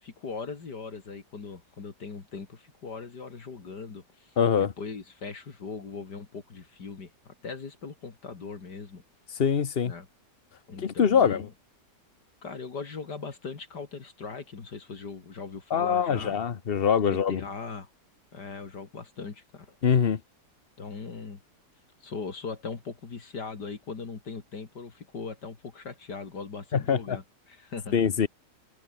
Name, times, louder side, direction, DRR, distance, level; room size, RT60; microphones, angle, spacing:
voice 1, 0.0-9.0 9.8-10.1 10.7-11.5 12.4-16.4 17.0-17.9 18.3-19.8 20.8-21.4 22.0-28.0, left 4 dB, 70° left, 3.2 m, -40 dB
voice 2, 4.4-4.7 9.4-9.9 10.8-11.5 15.7-17.4 19.8-20.2 26.7-27.2 27.9-28.3, left 7 dB, 40° left, 1.1 m, -23 dB
omnidirectional pair, 1.9 m